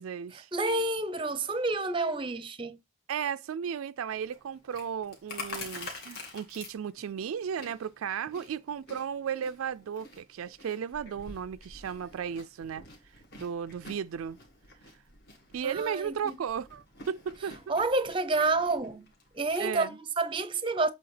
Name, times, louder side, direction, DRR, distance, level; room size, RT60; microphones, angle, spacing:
voice 1, 0.0-0.5 3.1-12.8 13.3-14.4 15.5-17.6 19.6-20.0, right 7 dB, 90° right, 0.4 m, -35 dB
voice 2, 0.5-2.8 15.6-16.3 17.7-19.1 19.3-20.9, right 3 dB, 25° right, 0.5 m, -29 dB
Chewing mastication, 4.1-19.7, left 3 dB, 50° left, 2.0 m, -48 dB
7.8 x 2.8 x 4.9 m
head